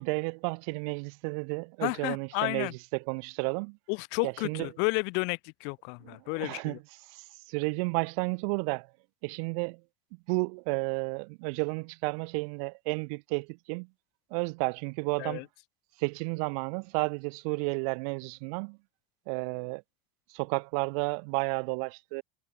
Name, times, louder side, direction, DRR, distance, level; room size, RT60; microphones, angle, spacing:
voice 1, 0.0-3.8 4.2-4.7 6.0-6.8 7.1-8.9 9.2-9.8 10.3-13.9 14.3-15.5 16.0-18.8 19.3-19.8 20.3-22.2, right 36 dB, 75° right, 3.4 m, -32 dB
voice 2, 1.8-2.7 3.9-6.8 15.2-15.4, left 35 dB, 70° left, 5.5 m, -32 dB
supercardioid pair, 105°, 18 cm